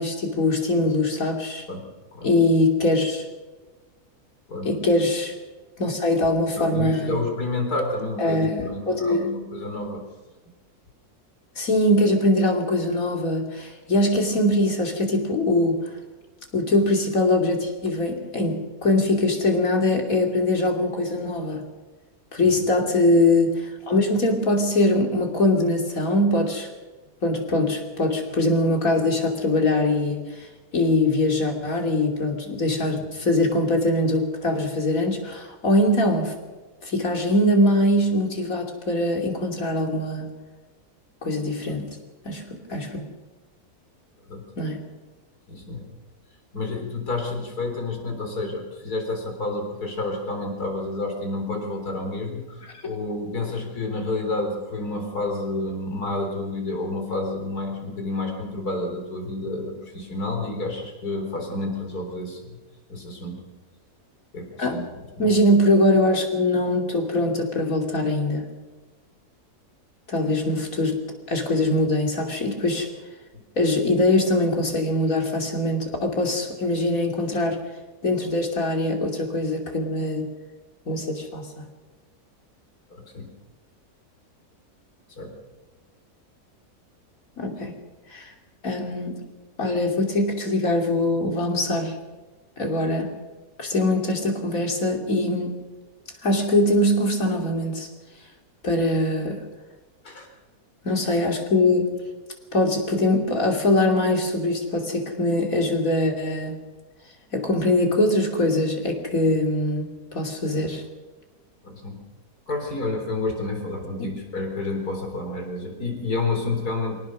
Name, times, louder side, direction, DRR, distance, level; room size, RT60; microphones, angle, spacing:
voice 1, 0.0-1.6 2.2-3.3 4.6-5.4 5.8-7.2 8.2-9.3 11.6-15.9 16.5-21.6 22.3-26.7 27.2-36.4 36.8-40.3 41.2-42.0 42.2-43.0 44.6-44.8 52.7-52.8 64.6-64.8 65.2-68.5 70.1-71.0 71.3-72.9 73.6-77.6 78.0-80.3 80.9-81.7 87.4-87.7 88.1-88.3 88.6-89.2 89.6-92.0 92.6-93.1 93.6-95.6 96.2-97.9 98.6-99.4 100.8-101.9 102.5-106.6 107.3-110.8 114.0-114.1, left 1 dB, 60° left, 2 dB, 3.5 m, -22 dB
voice 2, 6.5-10.0 22.4-22.6 32.9-33.0 42.7-42.8 44.2-44.4 45.5-45.9 46.5-62.6 62.9-63.4 64.3-64.9 65.2-65.3 73.3-73.4 82.9-83.3 85.2-85.3 100.0-100.3 110.6-110.7 111.6-112.0 112.5-117.0, left 2 dB, 80° left, 3 dB, 4.5 m, -29 dB
25.0 x 18.0 x 6.3 m, 1.2 s
omnidirectional pair, 1.6 m